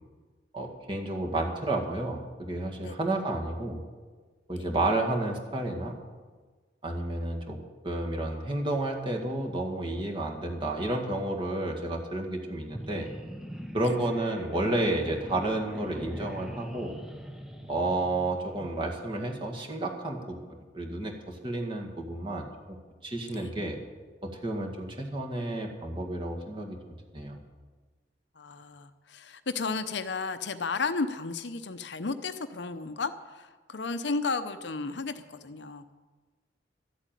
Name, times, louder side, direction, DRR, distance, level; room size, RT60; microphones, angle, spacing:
voice 1, 0.5-3.8 4.5-5.9 6.8-7.6 7.8-13.1 13.7-17.0 17.7-22.8 23.0-23.8 24.2-26.8 27.1-27.4, right 1 dB, 30° right, 1 dB, 2.0 m, -31 dB
sound 1, 12.6-18.8, equal, 5° right, 0.9 m, -42 dB
voice 2, 28.4-35.9, left 4 dB, 70° left, 10 dB, 0.7 m, -33 dB
13.5 x 8.3 x 9.1 m, 1.4 s
head